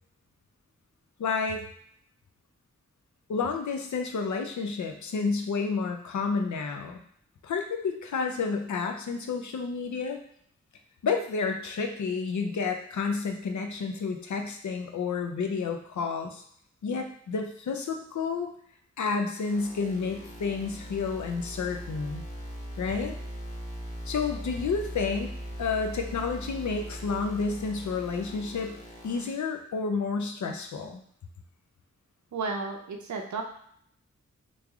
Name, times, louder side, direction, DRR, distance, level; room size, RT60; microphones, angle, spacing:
voice 1, 1.2-1.6 3.3-7.0 7.4-10.2 11.0-16.4 16.8-18.5 19.0-22.3 22.8-23.2 24.1-25.3 25.6-28.8 29.0-31.0, left 5 dB, 80° left, 4 dB, 0.5 m, -30 dB
sound 1, 19.4-29.3, equal, 25° left, 0.9 m, -40 dB
voice 2, 32.3-33.4, right 4 dB, 75° right, 2 dB, 0.6 m, -34 dB
3.2 x 2.5 x 3.4 m, 0.66 s
cardioid pair, 55°, 29 cm